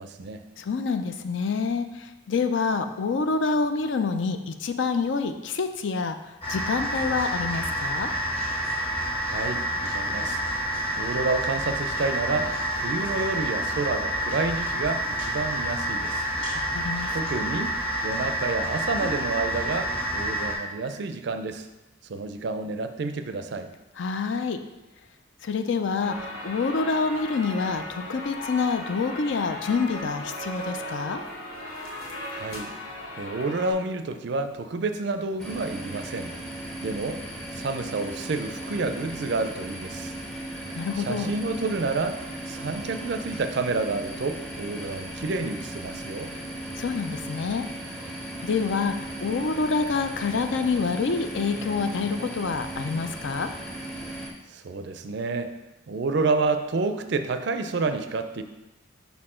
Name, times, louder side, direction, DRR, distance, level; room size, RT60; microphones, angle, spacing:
voice 1, 0.0-0.4 9.2-10.4 11.0-16.2 17.1-17.7 18.0-21.7 22.1-23.7 32.3-32.7 33.2-36.3 36.8-37.2 37.5-40.1 41.0-42.2 42.5-46.3 54.5-55.5 55.9-58.4, right 3 dB, 55° right, 9 dB, 0.4 m, -29 dB
voice 2, 0.6-6.2 6.5-8.1 16.5-17.2 24.0-24.6 25.4-31.2 40.8-41.3 46.8-47.6 48.4-48.9 49.2-53.5, left 4 dB, 65° left, 8 dB, 0.4 m, -27 dB
sound 1, 6.4-20.5, right 1 dB, 25° left, 1.5 m, -28 dB
sound 2, 26.0-33.7, left 1 dB, 85° left, 1.1 m, -37 dB
sound 3, 35.4-54.3, right 1 dB, 5° left, 0.6 m, -37 dB
5.5 x 4.3 x 4.3 m, 1.0 s
head